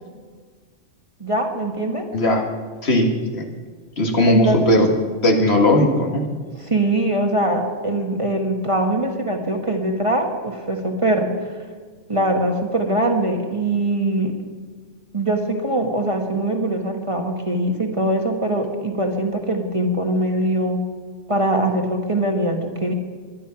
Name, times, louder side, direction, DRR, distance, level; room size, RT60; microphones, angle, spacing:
voice 1, 1.2-2.1 4.3-4.6 6.6-11.3 12.1-14.3 15.1-20.8 21.3-22.9, right 1 dB, 25° right, 2 dB, 1.4 m, -22 dB
voice 2, 2.1-2.4 2.8-3.5 4.0-4.9 5.2-6.3, left 1 dB, 55° left, 3 dB, 2.0 m, -17 dB
21.5 x 10.5 x 5.8 m, 1.5 s
omnidirectional pair, 1.3 m